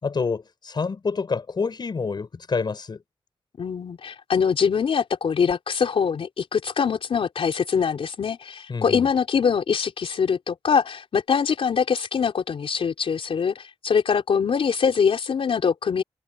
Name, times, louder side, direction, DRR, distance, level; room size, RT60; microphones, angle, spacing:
voice 1, 0.0-3.0 8.7-9.0, left 4 dB, 45° left, 6.6 m, -27 dB
voice 2, 3.6-16.0, left 6 dB, 70° left, 4.2 m, -23 dB
wide cardioid pair, 110°, 10 cm